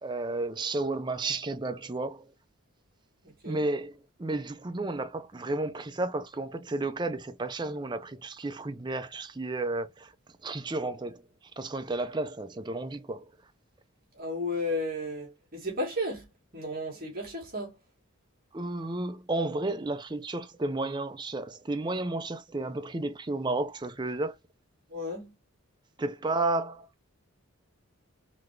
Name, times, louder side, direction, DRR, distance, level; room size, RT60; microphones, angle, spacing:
voice 1, 0.0-2.3 3.4-13.5 18.5-24.4 26.0-27.0, right 2 dB, 20° right, 0.5 m, -32 dB
voice 2, 3.2-3.6 14.1-16.3 16.5-17.7 24.9-25.3, left 1 dB, 40° right, 1.8 m, -33 dB
4.0 x 3.3 x 3.2 m
head